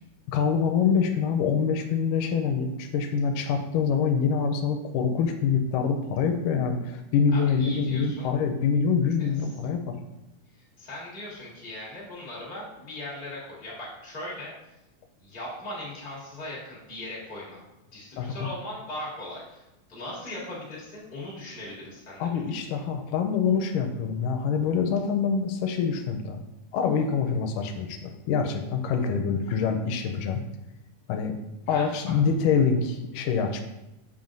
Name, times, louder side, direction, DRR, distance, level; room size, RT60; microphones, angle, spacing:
voice 1, 0.3-9.9 18.2-18.3 22.2-26.4 26.7-30.4 31.1-31.3 31.7-33.6, left 6 dB, 90° left, 5 dB, 2.2 m, -25 dB
voice 2, 7.3-8.3 9.2-9.3 10.5-14.5 15.2-17.6 17.9-22.3 31.7-32.1, left 1 dB, 20° left, -7 dB, 1.6 m, -39 dB
7.2 x 5.6 x 2.6 m, 0.93 s
omnidirectional pair, 3.8 m